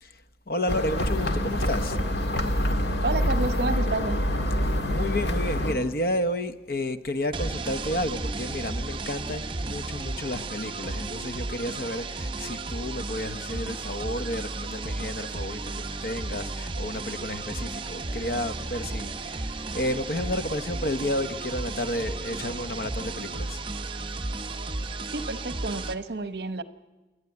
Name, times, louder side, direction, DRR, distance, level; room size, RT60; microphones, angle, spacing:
voice 1, 0.0-2.0 4.6-23.6, left 1 dB, 55° left, 1.0 m, -31 dB
sound 1, 0.7-5.8, equal, 70° left, 1.7 m, -26 dB
voice 2, 3.0-4.2 25.1-26.6, right 2 dB, 65° right, 1.0 m, -30 dB
sound 2, 7.3-25.9, right 3 dB, 30° right, 0.7 m, -34 dB
28.5 x 11.5 x 9.7 m
head